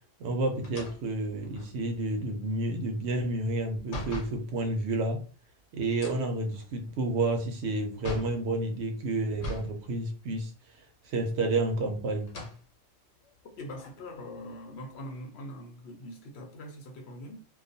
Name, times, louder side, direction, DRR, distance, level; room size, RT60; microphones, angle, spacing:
voice 1, 0.2-5.2 5.7-12.5, right 2 dB, 70° right, 0.8 m, -30 dB
sound 1, 0.6-4.4 5.9-8.4 9.3-9.8 10.1-10.2 11.3-11.8 12.2-12.6 13.2-13.3 13.7-15.1, left 1 dB, 85° left, 1.1 m, -42 dB
voice 2, 13.6-17.5, left 1 dB, 65° left, 0.8 m, -42 dB
2.3 x 2.2 x 2.6 m
omnidirectional pair, 1.3 m